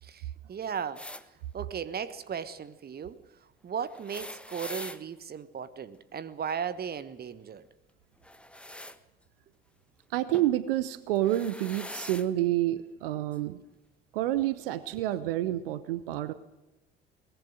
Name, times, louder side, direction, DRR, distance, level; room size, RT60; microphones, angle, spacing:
voice 1, 0.0-1.0 1.5-3.2 3.6-7.7 14.9-15.0, right 7 dB, 30° right, 1.3 m, -36 dB
sound 1, 1.0-1.2 3.9-5.0 8.2-9.0 10.3-10.5 11.2-12.3 13.3-13.4 14.6-14.7, left 1 dB, 5° left, 1.4 m, -42 dB
voice 2, 10.1-13.6 14.1-16.3, right 14 dB, 65° right, 0.9 m, -29 dB
22.0 x 19.5 x 6.5 m
figure-of-eight pair, 55°, 30 cm